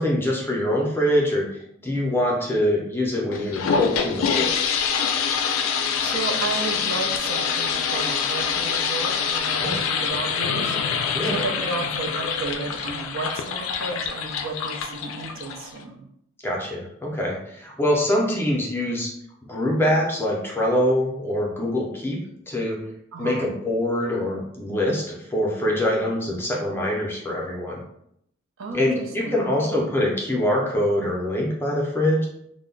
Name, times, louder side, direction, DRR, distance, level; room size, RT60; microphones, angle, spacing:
voice 1, 0.0-1.4 1.8-4.5 9.6-9.8 11.1-11.4 16.4-19.1 19.4-22.2 22.5-22.8 23.2-27.8 28.7-32.3, left 1 dB, 10° left, -2 dB, 0.4 m, -24 dB
sound 1, 3.3-15.8, left 6 dB, 85° left, 0.3 m, -25 dB
voice 2, 6.0-16.1 23.1-23.5 28.6-29.9, right 3 dB, 75° right, 2 dB, 0.5 m, -33 dB
2.1 x 2.0 x 3.7 m, 0.73 s
head